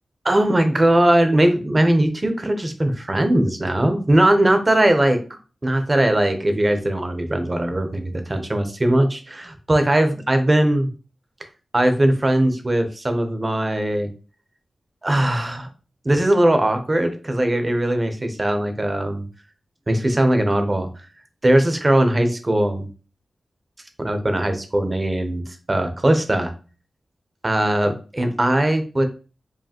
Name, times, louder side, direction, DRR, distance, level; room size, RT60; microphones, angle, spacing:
voice 1, 0.2-5.2 5.6-10.9 11.7-14.1 15.0-15.7 16.0-19.3 19.9-20.9 21.4-22.9 24.0-26.5 27.4-29.1, right 1 dB, 25° right, 6 dB, 0.7 m, -19 dB
4.7 x 2.7 x 2.9 m, 0.35 s
wide cardioid pair, 105°, 0 cm